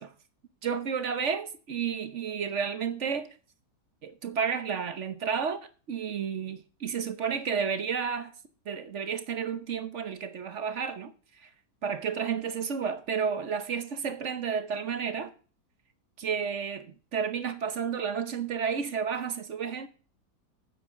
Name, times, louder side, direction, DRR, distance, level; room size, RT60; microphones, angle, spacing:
voice 1, 0.6-3.3 4.0-8.3 8.7-11.1 11.4-11.5 11.8-15.3 16.2-19.9, right 6 dB, 50° right, 1.0 m, -31 dB
9.0 x 7.5 x 6.1 m
omnidirectional pair, 1.8 m